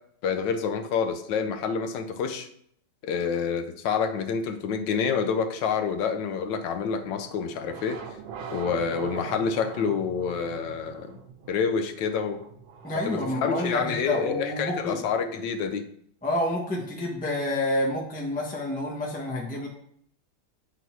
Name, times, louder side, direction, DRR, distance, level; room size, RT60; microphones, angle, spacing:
voice 1, 0.2-2.5 3.0-8.0 8.5-11.2 11.5-12.4 13.0-15.9, left 6 dB, 70° left, 7 dB, 1.4 m, -28 dB
sound 1, 6.8-15.6, right 5 dB, 85° right, 1.6 m, -43 dB
voice 2, 12.8-15.1 16.2-19.7, left 1 dB, 5° left, -2 dB, 1.1 m, -29 dB
9.0 x 4.0 x 4.6 m, 0.67 s
omnidirectional pair, 2.1 m